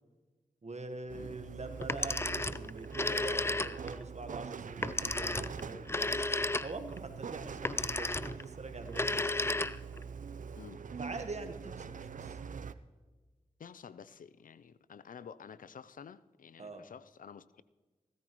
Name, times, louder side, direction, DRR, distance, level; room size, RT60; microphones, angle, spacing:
voice 1, 0.6-6.1 6.6-9.1 11.0-12.4 16.6-16.8, right 3 dB, 55° right, 1.3 m, -44 dB
sound 1, 1.1-12.7, right 6 dB, 70° right, 0.5 m, -44 dB
Telephone, 1.8-4.0 4.8-7.0 7.6-8.4 8.9-10.0, left 2 dB, 20° left, 0.4 m, -33 dB
voice 2, 13.6-17.6, left 7 dB, 75° left, 0.5 m, -51 dB
16.5 x 13.5 x 3.0 m
cardioid pair, 45°, 14 cm